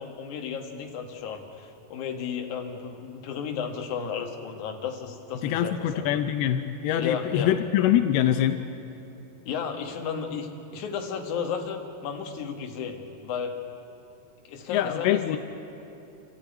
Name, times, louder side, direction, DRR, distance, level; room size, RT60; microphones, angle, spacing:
voice 1, 0.0-6.1 7.0-7.5 9.5-13.6 14.5-15.4, left 6 dB, 60° left, 3 dB, 2.7 m, -33 dB
voice 2, 5.4-8.6 14.7-15.4, left 11 dB, 85° left, 8 dB, 2.6 m, -24 dB
27.0 x 13.5 x 9.2 m, 2.9 s
omnidirectional pair, 4.4 m